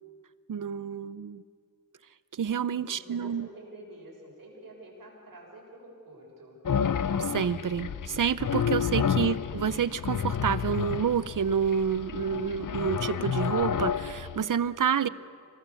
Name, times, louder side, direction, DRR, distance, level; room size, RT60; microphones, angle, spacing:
voice 1, 0.5-1.4 2.3-3.5 7.2-15.1, right 7 dB, 65° right, 17 dB, 0.7 m, -28 dB
voice 2, 2.6-6.6 14.8-15.1, right 1 dB, 85° right, -2 dB, 6.5 m, -48 dB
sound 1, 6.7-14.4, left 7 dB, 65° left, 0.7 m, -30 dB
26.5 x 19.0 x 7.0 m, 2.3 s
wide cardioid pair, 80°, 34 cm